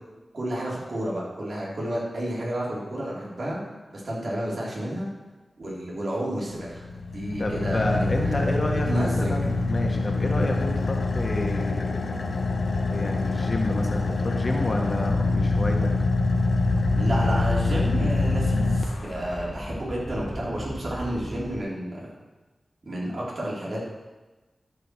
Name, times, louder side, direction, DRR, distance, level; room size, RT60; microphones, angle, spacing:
voice 1, 0.3-3.6 3.9-5.1 5.6-6.9 7.1-9.3 17.0-22.1 22.8-23.8, right 1 dB, 60° right, -5 dB, 3.8 m, -31 dB
Car / Idling, 6.6-19.5, left 3 dB, 70° left, 1.0 m, -25 dB
voice 2, 7.4-12.2 12.9-15.9, left 1 dB, 45° left, 1 dB, 1.7 m, -30 dB
sound 1, 16.5-21.6, equal, 10° left, 0.9 m, -36 dB
13.0 x 5.0 x 6.2 m, 1.2 s
wide cardioid pair, 65°, 0 cm